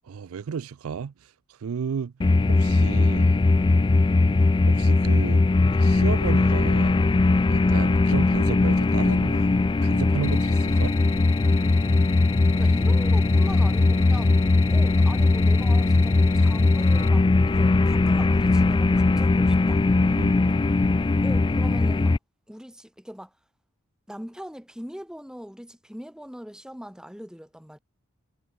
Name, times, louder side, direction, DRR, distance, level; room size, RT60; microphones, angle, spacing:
voice 1, 0.0-2.1 2.5-3.3 4.7-5.4 5.8-7.0 7.5-9.5 9.8-10.9 20.2-20.5, right 6 dB, 70° right, 0.4 m, -33 dB
sound 1, 2.2-22.2, left 3 dB, 20° left, 0.3 m, -20 dB
sound 2, 10.2-17.1, left 12 dB, 65° left, 1.8 m, -42 dB
voice 2, 12.6-14.4 14.7-19.8 21.2-22.2 22.5-23.3 24.1-27.8, equal, 5° right, 4.8 m, -41 dB
head